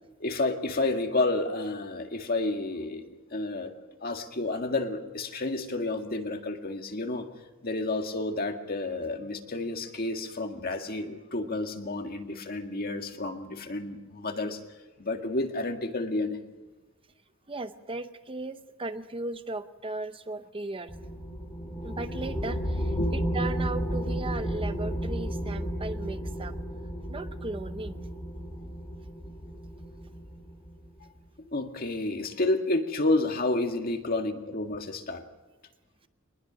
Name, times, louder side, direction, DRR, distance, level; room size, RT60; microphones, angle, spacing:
voice 1, 0.2-3.7 4.0-7.3 7.6-14.6 15.0-16.4 23.0-23.1 31.5-35.2, left 2 dB, 45° left, 4 dB, 1.9 m, -30 dB
voice 2, 17.5-20.9 21.8-26.6 27.1-28.1, right 2 dB, 25° right, 11 dB, 0.7 m, -37 dB
sound 1, 20.9-30.9, equal, 20° left, 3.9 m, -33 dB
23.5 x 20.5 x 6.2 m, 1.2 s
head